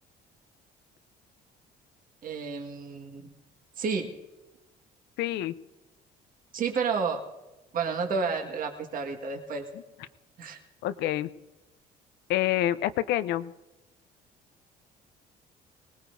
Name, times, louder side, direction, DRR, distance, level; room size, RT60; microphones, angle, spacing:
voice 1, 2.2-3.3 3.8-4.1 6.5-7.2 7.7-9.6 10.4-10.6, right 5 dB, 55° right, 2 dB, 1.8 m, -30 dB
voice 2, 5.2-5.5 10.8-11.3 12.3-13.5, left 13 dB, 80° left, 14 dB, 0.6 m, -27 dB
24.0 x 19.5 x 2.7 m, 1.1 s
cardioid pair, 110°, 17 cm